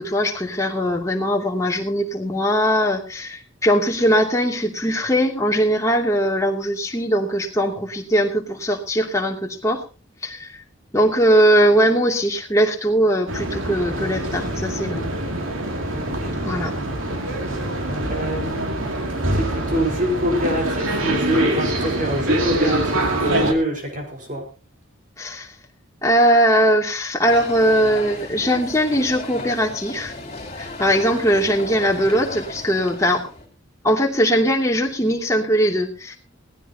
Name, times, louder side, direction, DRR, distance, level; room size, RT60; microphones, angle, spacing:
voice 1, 0.0-9.8 10.2-10.6 10.9-15.0 16.4-16.7 25.2-25.5 26.0-30.1 30.6-33.2 33.8-36.2, equal, 15° left, 0 dB, 2.6 m, -20 dB
sound 1, 13.3-23.5, right 1 dB, 85° right, 2.6 m, -24 dB
voice 2, 16.0-16.3 18.1-18.7 19.4-24.5, equal, 40° right, 1 dB, 5.0 m, -25 dB
sound 2, 27.3-33.4, left 2 dB, 35° left, 5.4 m, -35 dB
18.5 x 15.5 x 2.9 m, 0.32 s
head